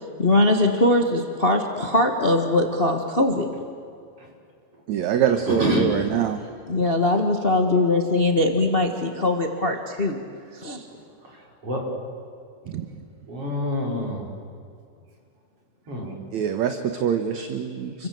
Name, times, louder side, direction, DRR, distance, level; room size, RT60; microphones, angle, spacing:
voice 1, 0.2-3.5 6.7-10.2 10.5-10.8, left 2 dB, 70° left, 4 dB, 0.5 m, -21 dB
voice 2, 4.9-6.5 12.7-13.0 16.3-18.1, right 8 dB, 65° right, 8 dB, 2.1 m, -24 dB
voice 3, 5.5-5.9 11.2-11.4 11.6-11.9 13.3-14.3 15.9-16.2, equal, 40° right, -1 dB, 6.4 m, -26 dB
30.0 x 23.5 x 7.9 m, 2.4 s
omnidirectional pair, 4.3 m